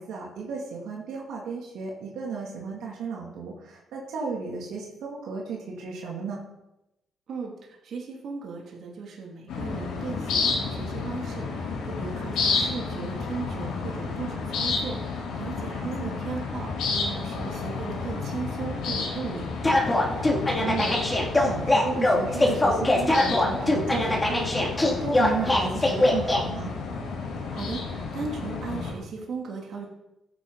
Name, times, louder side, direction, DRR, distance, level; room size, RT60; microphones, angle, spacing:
voice 1, 0.0-6.4 15.8-16.2 20.6-26.7, right 5 dB, 80° right, -2 dB, 2.8 m, -34 dB
voice 2, 7.3-19.5 27.5-29.9, right 5 dB, 65° right, -1 dB, 2.7 m, -37 dB
sound 1, 9.5-28.9, left 4 dB, 85° left, 4.0 m, -31 dB
sound 2, 19.6-26.4, left 1 dB, 15° left, 2.7 m, -22 dB
14.5 x 9.2 x 4.1 m, 0.91 s
cardioid pair, 90°, 0 cm